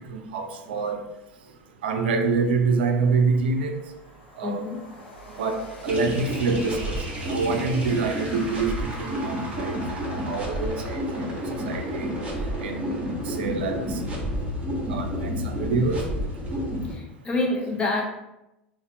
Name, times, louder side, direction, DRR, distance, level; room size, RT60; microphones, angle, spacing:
voice 1, 0.1-1.0 1.8-3.8 4.4-4.7 5.4-8.7 9.0-9.8 10.1-11.3 11.7-12.1 12.6-12.9 13.3-14.0 14.9-16.0, right 4 dB, 70° right, 6 dB, 0.4 m, -26 dB
Train, 1.3-1.4 1.8-12.2, left 1 dB, 80° left, 0.7 m, -48 dB
voice 2, 4.4-4.8 16.8-18.0, left 2 dB, 20° left, 0 dB, 0.8 m, -27 dB
sound 1, 5.9-16.9, equal, 20° right, 1.0 m, -30 dB
4.0 x 2.1 x 2.8 m, 0.90 s
figure-of-eight pair, 80°, 6 cm